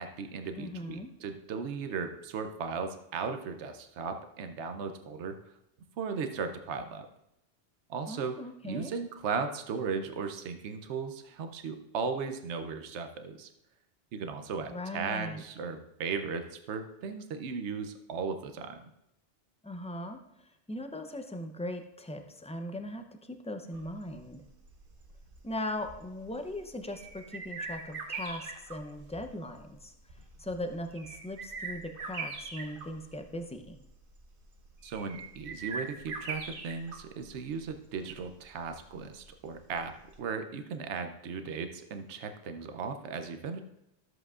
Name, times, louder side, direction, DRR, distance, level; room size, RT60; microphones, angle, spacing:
voice 1, 0.0-5.4 6.0-7.1 7.9-8.4 8.6-13.5 14.1-18.8 34.8-43.6, right 5 dB, 85° right, 7 dB, 1.0 m, -36 dB
voice 2, 0.6-1.1 8.1-8.9 14.7-15.4 19.6-24.4 25.4-29.9 30.4-33.8, left 1 dB, 10° left, 6 dB, 0.4 m, -39 dB
sound 1, 23.7-40.2, right 4 dB, 55° right, 1.1 m, -43 dB
13.5 x 7.9 x 2.4 m, 0.82 s
omnidirectional pair, 1.1 m